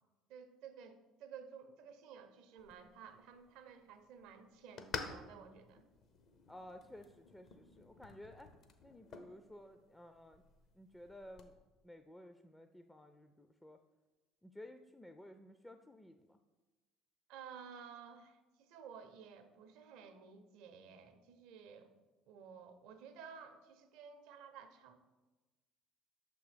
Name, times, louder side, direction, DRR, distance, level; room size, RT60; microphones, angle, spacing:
voice 1, 0.3-5.8 17.3-21.9 22.3-25.0, right 7 dB, 70° right, 8 dB, 0.6 m, -54 dB
sound 1, 2.6-11.5, left 5 dB, 55° left, 0.6 m, -51 dB
voice 2, 6.5-8.5 8.8-10.4 10.7-11.5 11.8-13.8 14.4-16.4, left 1 dB, 10° left, 7 dB, 0.3 m, -55 dB
6.1 x 3.5 x 5.0 m, 1.2 s
hypercardioid pair, 70°, 0 cm